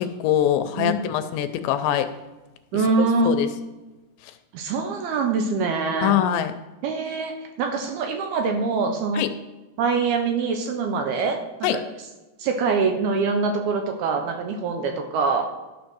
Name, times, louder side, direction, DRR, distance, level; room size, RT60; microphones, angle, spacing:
voice 1, 0.0-2.1 3.3-3.5 6.0-6.5 9.2-9.3 11.6-11.8, left 11 dB, 80° left, 10 dB, 2.7 m, -23 dB
voice 2, 0.7-1.2 2.7-3.4 4.5-6.2 6.8-9.3 9.8-11.8 12.4-15.5, right 4 dB, 70° right, 4 dB, 2.7 m, -24 dB
12.5 x 4.9 x 6.2 m, 1.1 s
omnidirectional pair, 5.1 m